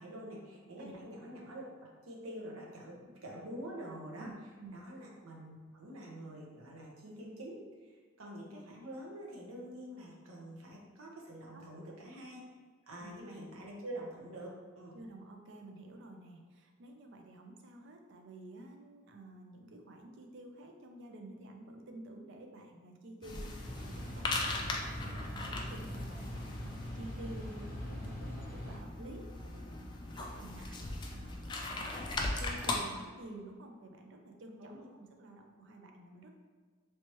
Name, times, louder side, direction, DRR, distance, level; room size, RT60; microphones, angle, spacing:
voice 1, 0.0-1.7 2.0-4.3 4.7-12.4 12.9-14.9 34.6-34.9, right 1 dB, 85° right, -3 dB, 0.8 m, -46 dB
voice 2, 11.5-11.8 13.0-13.1 14.9-34.8 35.2-36.3, right 1 dB, 60° right, 3 dB, 0.4 m, -51 dB
sound 1, 23.2-32.8, left 2 dB, 20° left, 0.3 m, -39 dB
sound 2, 23.6-28.8, equal, 40° left, 0.9 m, -43 dB
3.2 x 2.9 x 2.9 m, 1.5 s
head